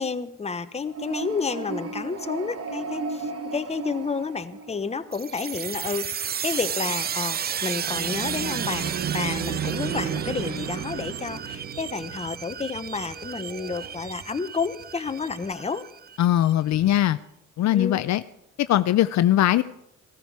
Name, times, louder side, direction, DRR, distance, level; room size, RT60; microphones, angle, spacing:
voice 1, 0.0-15.8 17.7-18.0, left 4 dB, 20° left, 10 dB, 0.9 m, -30 dB
sound 1, 0.8-5.1 7.7-12.7, right 6 dB, 50° right, 1.2 m, -33 dB
sound 2, 5.1-16.5, right 8 dB, 35° right, 0.5 m, -33 dB
sound 3, 10.6-15.5, right 2 dB, 65° right, 2.7 m, -51 dB
voice 2, 16.2-17.2 17.6-18.2 18.6-19.6, left 13 dB, 65° left, 13 dB, 0.5 m, -20 dB
15.5 x 14.0 x 4.7 m, 0.79 s
cardioid pair, 90°, 30 cm